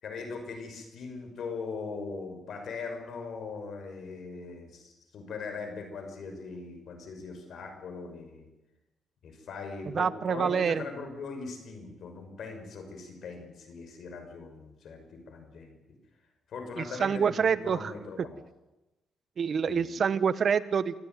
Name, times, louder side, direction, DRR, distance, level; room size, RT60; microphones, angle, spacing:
voice 1, 0.0-8.5 9.2-15.7 16.5-18.3 19.7-20.0, left 4 dB, 65° left, 6 dB, 5.9 m, -40 dB
voice 2, 9.9-10.8 16.8-17.9 19.4-21.0, right 6 dB, 50° right, 15 dB, 1.2 m, -27 dB
25.5 x 14.5 x 9.3 m, 1.0 s
cardioid pair, 90°, 0 cm